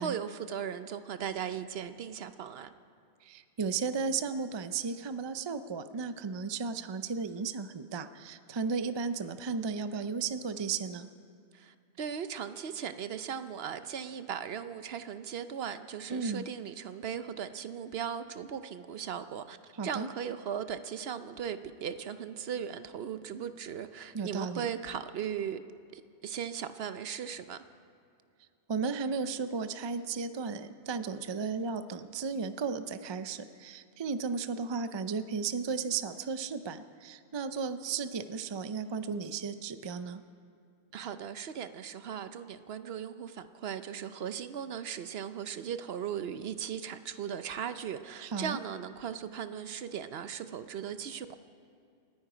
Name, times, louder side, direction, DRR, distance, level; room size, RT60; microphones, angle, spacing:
voice 1, 0.0-2.7 11.5-25.6 25.9-27.6 40.9-51.4, right 8 dB, 65° right, 11 dB, 0.9 m, -38 dB
voice 2, 3.2-11.1 16.1-16.5 19.8-20.1 24.1-24.7 28.7-40.2 48.2-48.6, right 5 dB, 40° right, 11 dB, 0.4 m, -34 dB
28.5 x 9.7 x 5.0 m, 2.4 s
omnidirectional pair, 1.1 m